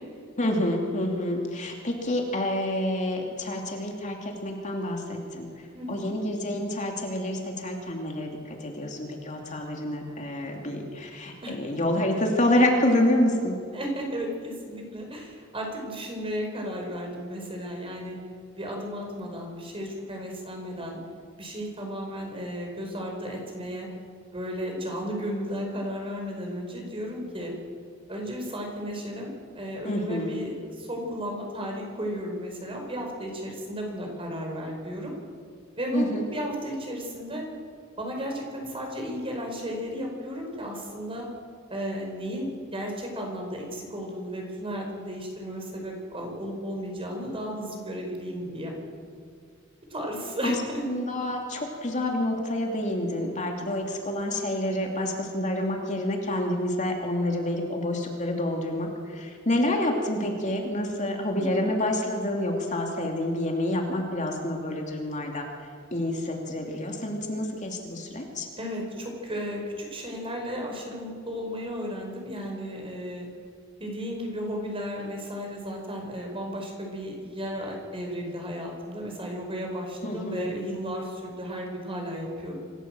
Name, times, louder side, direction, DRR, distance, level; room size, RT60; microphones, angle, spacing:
voice 1, 0.4-5.5 5.9-13.6 29.8-30.4 35.9-36.3 50.4-50.5 50.9-65.5 65.9-68.5 80.0-80.5, left 1 dB, 40° left, 1 dB, 2.8 m, -28 dB
voice 2, 5.7-6.1 11.4-11.8 13.7-18.1 18.6-21.0 21.4-23.9 24.3-27.5 28.1-35.1 35.8-37.4 38.0-41.3 41.7-48.8 49.9-50.8 61.3-61.6 68.6-73.3 73.8-82.5, equal, 25° right, 1 dB, 5.0 m, -34 dB
26.0 x 15.5 x 7.7 m, 2.2 s
head